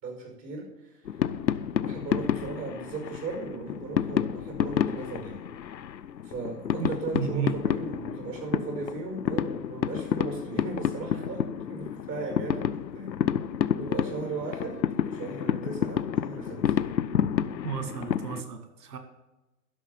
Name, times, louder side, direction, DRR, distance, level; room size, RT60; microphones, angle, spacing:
voice 1, 0.0-1.0 1.8-5.4 6.2-13.2 13.8-16.8, right 3 dB, 30° right, 1 dB, 5.4 m, -37 dB
sound 1, 1.0-18.4, left 9 dB, 90° left, 0.8 m, -30 dB
voice 2, 6.8-7.6 17.6-19.0, right 8 dB, 65° right, 7 dB, 2.1 m, -33 dB
12.0 x 6.4 x 9.4 m, 1.0 s
hypercardioid pair, 135°, 50 cm